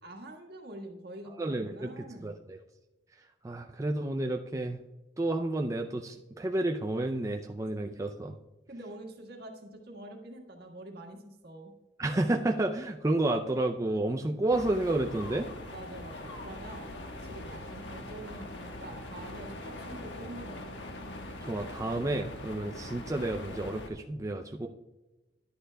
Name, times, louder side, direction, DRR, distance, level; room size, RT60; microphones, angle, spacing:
voice 1, 0.0-2.3 8.7-11.7 15.7-16.8 17.2-20.7, right 1 dB, 60° right, 2 dB, 1.6 m, -46 dB
voice 2, 1.4-1.9 2.2-2.6 3.4-4.8 5.2-8.4 12.0-15.5 21.4-24.7, right 2 dB, 20° right, 3 dB, 0.4 m, -30 dB
sound 1, 14.5-23.9, left 1 dB, 75° left, 1.3 m, -42 dB
11.0 x 10.0 x 2.2 m, 1.1 s
head